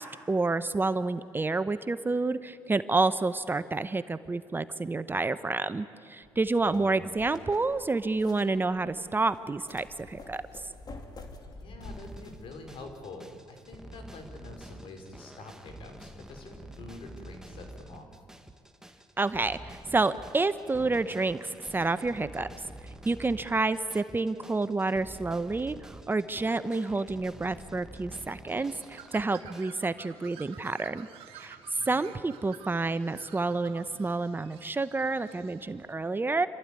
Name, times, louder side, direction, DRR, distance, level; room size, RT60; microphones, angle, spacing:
voice 1, 0.0-10.4 19.2-22.5 23.0-31.1 31.4-31.6 31.9-36.5, right 3 dB, 20° right, 13 dB, 0.7 m, -29 dB
sound 1, 6.2-12.8, left 2 dB, 45° left, 2.6 m, -48 dB
voice 2, 6.6-7.2 11.5-18.2 31.8-32.0, left 2 dB, 65° left, 5 dB, 4.0 m, -46 dB
sound 2, 11.8-29.6, right 1 dB, 5° right, 1.3 m, -48 dB
Bird, 28.5-35.9, right 9 dB, 80° right, 1.8 m, -51 dB
26.5 x 13.5 x 9.7 m, 2.3 s
cardioid pair, 80°, 10 cm